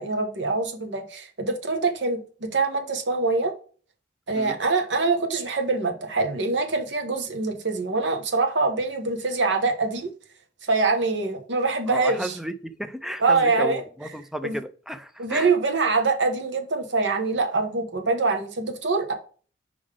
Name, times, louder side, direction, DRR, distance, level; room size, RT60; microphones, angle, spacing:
voice 1, 0.0-3.5 4.3-10.1 10.7-12.4 13.2-13.8 14.4-14.6 15.2-19.1, right 3 dB, 80° right, 1.1 m, -24 dB
voice 2, 11.9-15.5, equal, ahead, 0.4 m, -33 dB
5.2 x 3.8 x 4.9 m
head